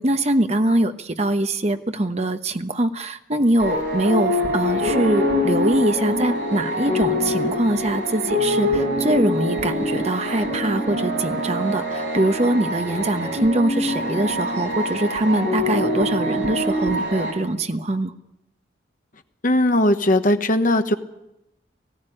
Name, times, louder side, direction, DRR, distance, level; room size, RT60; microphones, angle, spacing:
voice 1, 0.0-18.1, right 1 dB, 35° right, 8 dB, 1.1 m, -23 dB
sound 1, 3.6-17.3, left 1 dB, 70° right, 6.8 m, -24 dB
voice 2, 19.4-20.9, left 1 dB, 45° left, 8 dB, 1.2 m, -18 dB
19.0 x 15.0 x 10.0 m, 0.88 s
head